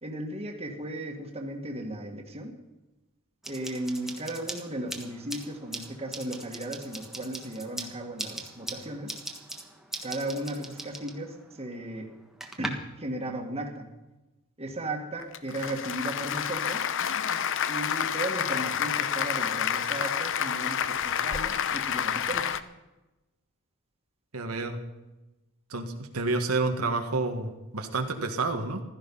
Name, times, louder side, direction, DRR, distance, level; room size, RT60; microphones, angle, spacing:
voice 1, 0.0-2.5 3.5-9.2 10.0-12.1 12.6-13.9 14.6-16.9 17.7-22.5, right 1 dB, 30° right, 2 dB, 1.9 m, -36 dB
sound 1, 3.4-12.7, right 1 dB, ahead, 1.4 m, -41 dB
Applause, 15.2-22.6, left 8 dB, 60° left, 0.7 m, -29 dB
voice 2, 24.3-24.8 25.7-28.8, right 3 dB, 80° right, 4 dB, 1.7 m, -29 dB
16.0 x 12.5 x 5.5 m, 1.0 s
head